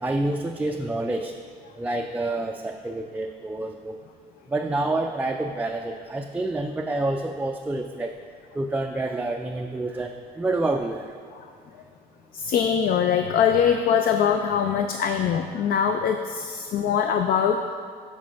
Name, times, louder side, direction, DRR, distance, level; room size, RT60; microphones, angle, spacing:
voice 1, 0.0-1.3 1.8-4.0 4.5-8.1 8.5-11.0, right 2 dB, 10° right, 2 dB, 0.3 m, -28 dB
voice 2, 12.3-17.7, left 7 dB, 60° left, 6 dB, 0.5 m, -23 dB
7.3 x 4.6 x 6.4 m, 2.2 s
cardioid pair, 110°, 17 cm